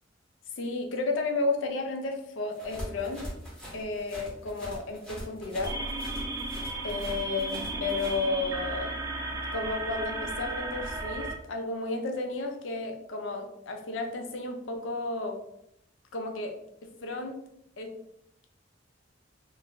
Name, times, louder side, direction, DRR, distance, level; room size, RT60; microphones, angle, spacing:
voice 1, 0.6-3.3 3.7-5.8 6.8-8.9 9.5-15.4 16.1-16.5 16.8-17.4 17.8-17.9, left 3 dB, 75° left, 3 dB, 0.5 m, -32 dB
sound 1, 2.5-8.2, equal, 5° left, 0.7 m, -42 dB
sound 2, 5.6-11.4, right 2 dB, 15° right, 0.3 m, -34 dB
2.5 x 2.2 x 3.7 m, 0.78 s
head